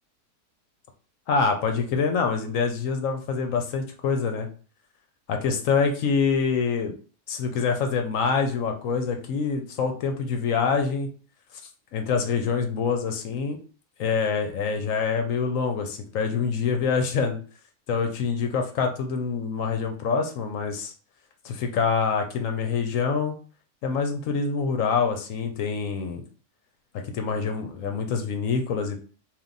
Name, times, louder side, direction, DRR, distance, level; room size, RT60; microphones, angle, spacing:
voice 1, 1.3-4.5 5.3-6.9 7.3-11.1 11.9-13.6 14.0-17.4 17.9-20.9 21.4-23.4 23.8-26.2 27.1-29.0, left 5 dB, 65° left, 5 dB, 0.9 m, -25 dB
3.5 x 2.7 x 3.9 m, 0.39 s
omnidirectional pair, 1.7 m